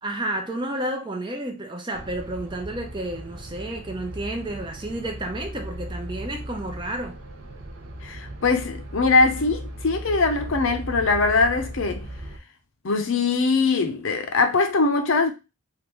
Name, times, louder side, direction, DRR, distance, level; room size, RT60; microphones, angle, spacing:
voice 1, 0.0-7.1, right 1 dB, 20° right, 0.5 m, -31 dB
sound 1, 1.9-12.4, right 1 dB, 65° right, 0.6 m, -37 dB
voice 2, 8.0-12.1 12.8-15.3, left 3 dB, 60° left, 0.6 m, -22 dB
3.3 x 2.5 x 3.0 m
head